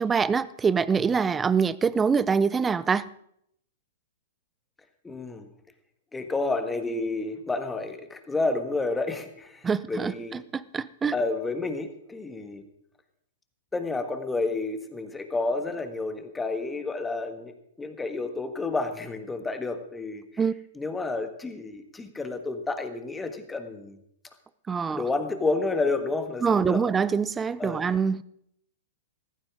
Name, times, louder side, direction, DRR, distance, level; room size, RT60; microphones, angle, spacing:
voice 1, 0.0-3.0 9.6-11.1 20.4-20.5 24.7-25.0 26.4-28.2, right 6 dB, 15° right, 0.5 m, -24 dB
voice 2, 5.0-5.5 6.1-10.4 11.1-12.6 13.7-20.4 20.7-24.0 24.9-26.8 27.6-27.8, left 3 dB, 10° left, 1.5 m, -30 dB
15.5 x 14.5 x 3.7 m
hypercardioid pair, 110°, 0 cm